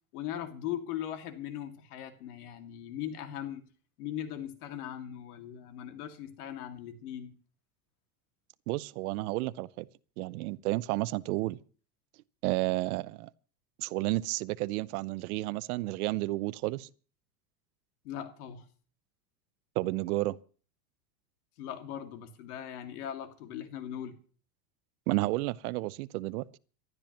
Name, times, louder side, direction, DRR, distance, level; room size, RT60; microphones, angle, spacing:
voice 1, 0.1-3.6 4.0-7.3 18.0-18.7 21.6-24.2, left 10 dB, 75° left, 2.4 m, -39 dB
voice 2, 8.7-9.9 10.2-11.6 12.4-13.3 13.8-16.9 19.8-20.4 25.1-26.5, right 20 dB, 70° right, 0.8 m, -31 dB
26.0 x 12.5 x 3.0 m
supercardioid pair, 130°, 46 cm